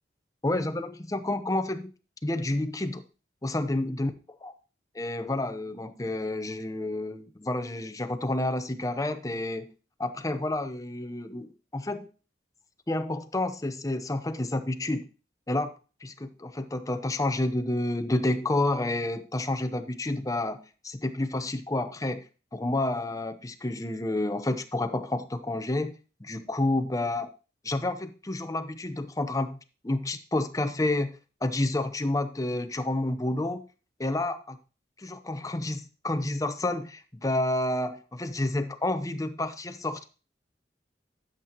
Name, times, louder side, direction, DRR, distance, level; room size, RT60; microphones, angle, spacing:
voice 1, 0.4-1.9 2.2-3.0 3.4-4.1 4.4-4.5 4.9-9.7 10.0-12.1 12.9-15.1 15.5-15.7 16.0-22.2 22.5-25.9 26.2-27.3 27.6-29.6 29.8-31.1 31.4-33.6 34.0-34.6 35.0-40.0, left 2 dB, 20° left, 10 dB, 0.8 m, -29 dB
11.5 x 7.5 x 2.9 m, 0.33 s
head